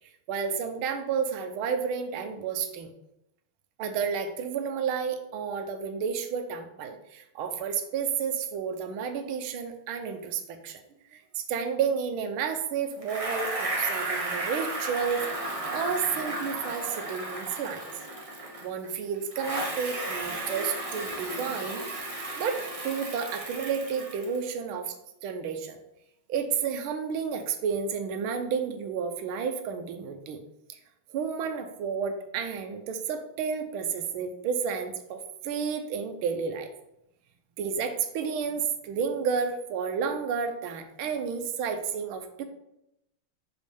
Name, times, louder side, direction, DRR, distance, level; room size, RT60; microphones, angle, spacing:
voice 1, 0.3-2.9 3.8-10.8 11.1-17.9 18.6-21.8 22.4-24.9 25.2-25.8 26.3-30.4 31.1-36.7 37.6-42.4, right 6 dB, 85° right, 7 dB, 1.5 m, -31 dB
Bicycle, 13.0-18.9 19.3-24.5, right 2 dB, 25° right, 0.7 m, -34 dB
5.6 x 5.2 x 3.3 m, 0.83 s
omnidirectional pair, 2.3 m